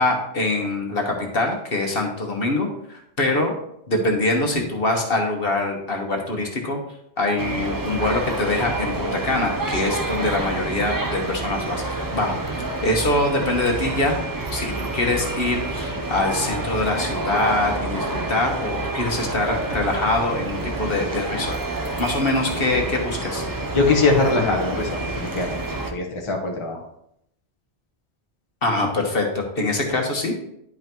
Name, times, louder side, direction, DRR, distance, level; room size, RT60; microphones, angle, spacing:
voice 1, 0.0-3.5 3.9-6.8 7.2-14.2 14.5-21.5 22.0-23.4 28.6-30.3, left 2 dB, 55° left, 1 dB, 1.5 m, -24 dB
sound 1, 7.4-25.9, right 2 dB, 20° right, 0.6 m, -28 dB
voice 2, 23.7-25.6 25.9-26.8, left 3 dB, 30° left, 0 dB, 1.0 m, -21 dB
10.5 x 5.6 x 3.0 m, 0.77 s
omnidirectional pair, 1.1 m